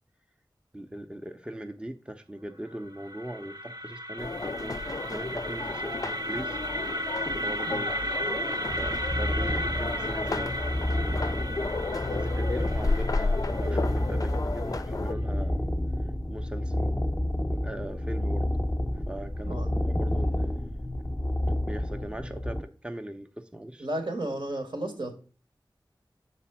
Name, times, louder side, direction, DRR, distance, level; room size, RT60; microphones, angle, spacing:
voice 1, 0.7-6.6 7.2-7.9 8.2-10.5 11.9-15.6 16.3-16.7 17.5-18.5 19.1-20.9 21.6-23.9, right 1 dB, 10° right, 7 dB, 0.6 m, -40 dB
sound 1, 2.7-14.7, equal, 55° right, 0.7 m, -35 dB
sound 2, 4.2-15.1, left 3 dB, 45° left, 0.4 m, -33 dB
sound 3, 8.7-22.6, left 1 dB, 15° left, 0.9 m, -30 dB
voice 2, 23.8-25.1, right 1 dB, 80° right, 4 dB, 1.7 m, -33 dB
6.5 x 4.2 x 5.7 m, 0.37 s
wide cardioid pair, 55°, 8 cm